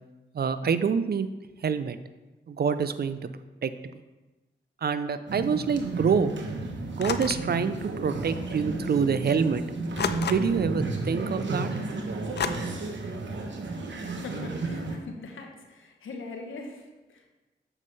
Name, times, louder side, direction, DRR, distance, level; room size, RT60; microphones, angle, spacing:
voice 1, 0.3-1.3 1.6-2.0 2.5-3.2 3.6-3.7 4.8-6.3 6.9-9.6 10.3-11.7, right 6 dB, 55° right, 11 dB, 0.5 m, -26 dB
sound 1, 5.3-15.0, right 3 dB, 70° right, 1.0 m, -33 dB
sound 2, 7.0-7.5 8.6-8.7 10.0-10.7 12.4-12.5, left 7 dB, 60° left, 0.4 m, -30 dB
voice 2, 14.1-17.3, left 3 dB, 85° left, 3 dB, 1.0 m, -42 dB
7.3 x 5.4 x 3.3 m, 1.1 s
cardioid pair, 45°, 20 cm